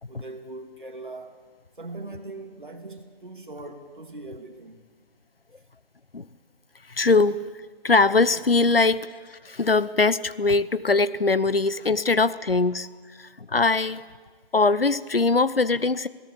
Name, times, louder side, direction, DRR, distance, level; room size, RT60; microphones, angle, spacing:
voice 1, 0.1-1.4 1.8-4.8, right 2 dB, 55° right, 5 dB, 2.5 m, -40 dB
voice 2, 6.9-7.5 7.8-14.0 14.5-16.1, left 3 dB, 65° left, 17 dB, 0.8 m, -22 dB
27.0 x 17.5 x 7.4 m, 1.5 s
figure-of-eight pair, 160°, 31 cm